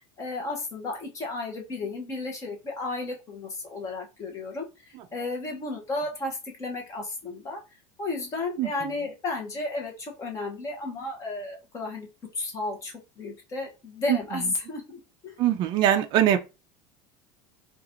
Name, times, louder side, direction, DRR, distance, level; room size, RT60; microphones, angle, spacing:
voice 1, 0.2-7.6 8.0-12.1 12.3-15.4, left 2 dB, 20° left, 0.9 m, -33 dB
voice 2, 15.4-16.4, right 11 dB, 35° right, 0.4 m, -21 dB
3.8 x 2.4 x 2.9 m
cardioid pair, 180°, 14 cm